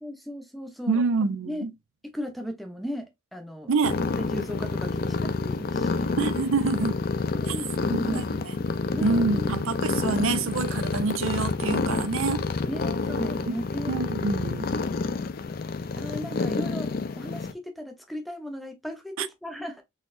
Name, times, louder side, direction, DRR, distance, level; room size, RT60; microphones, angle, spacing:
voice 1, 0.0-1.0 1.5-1.7 2.1-3.7 4.2-6.2 7.3-8.4 8.9-9.7 12.7-14.0 16.0-16.9 17.1-19.8, equal, ahead, 0.6 m, -36 dB
voice 2, 0.9-1.7 3.7-4.0 6.2-7.0 7.5-7.6 7.9-8.6 9.0-12.5 13.5-13.6 13.9-14.7 19.2-19.3, right 4 dB, 90° right, 0.5 m, -27 dB
sound 1, 3.8-17.5, left 4 dB, 45° left, 0.4 m, -28 dB
4.0 x 2.9 x 2.5 m
head